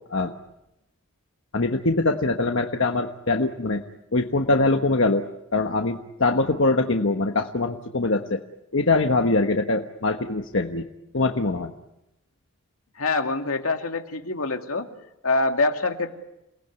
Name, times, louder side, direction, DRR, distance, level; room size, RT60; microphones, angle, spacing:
voice 1, 1.5-3.8 4.1-8.4 8.7-10.8 11.1-11.7, left 2 dB, 60° left, 4 dB, 1.3 m, -23 dB
voice 2, 13.0-14.9 15.2-16.2, left 3 dB, 80° left, 5 dB, 2.3 m, -25 dB
29.0 x 19.0 x 9.5 m, 0.88 s
head